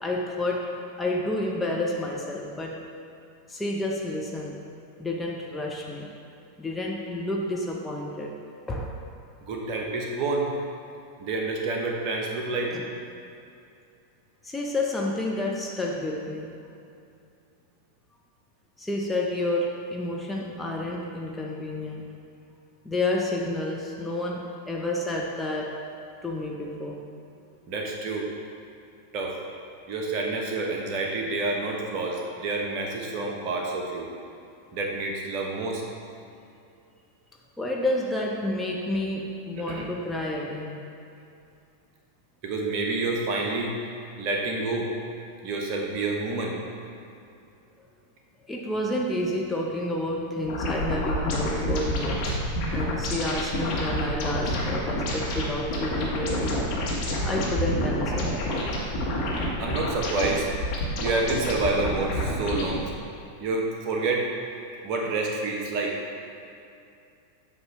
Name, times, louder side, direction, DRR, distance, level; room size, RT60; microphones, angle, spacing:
voice 1, 0.0-2.8 3.5-4.6 5.0-6.1 6.6-8.4 8.7-9.0 12.7-12.8 14.4-16.6 18.8-22.1 22.8-25.8 26.2-27.0 37.6-40.8 48.5-52.4 52.7-56.6 57.2-58.3, left 1 dB, 5° left, -2 dB, 0.7 m, -30 dB
voice 2, 9.5-10.5 11.2-12.8 27.7-28.3 29.1-29.4 29.9-34.1 34.7-35.8 39.6-39.9 42.4-43.7 44.2-44.9 45.4-46.6 59.6-60.5 61.0-62.8 63.4-64.3 64.8-66.0, right 3 dB, 40° right, 0 dB, 1.0 m, -28 dB
sound 1, 50.5-62.8, equal, 40° left, 1.5 m, -28 dB
7.8 x 3.0 x 5.5 m, 2.6 s
figure-of-eight pair, 90°, 0 cm